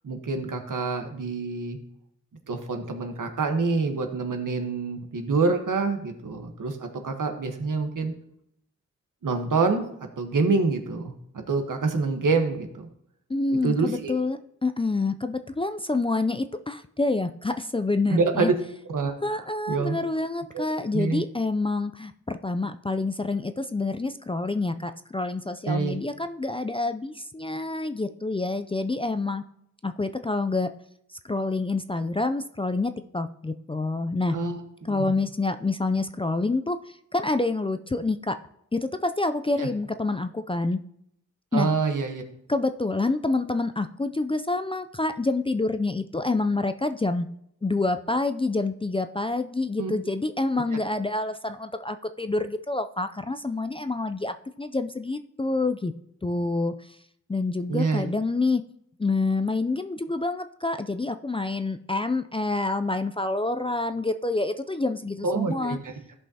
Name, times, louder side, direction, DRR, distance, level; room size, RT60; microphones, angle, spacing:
voice 1, 0.0-1.8 2.5-8.1 9.2-9.8 10.2-12.8 13.6-14.1 18.1-18.5 18.9-20.0 20.5-20.7 20.9-21.2 25.6-25.9 34.3-34.6 34.9-35.0 39.6-39.7 41.5-42.2 49.8-49.9 57.7-58.0 65.2-65.9, right 4 dB, 70° right, 6 dB, 1.2 m, -26 dB
voice 2, 13.3-18.5 19.2-29.4 29.8-30.7 31.3-34.4 34.8-38.4 38.7-40.8 41.5-41.7 42.5-47.3 47.6-55.9 56.2-56.7 57.3-58.6 59.0-65.8, left 3 dB, 15° left, 9 dB, 0.4 m, -27 dB
14.5 x 5.4 x 2.8 m, 0.73 s
cardioid pair, 65°, 32 cm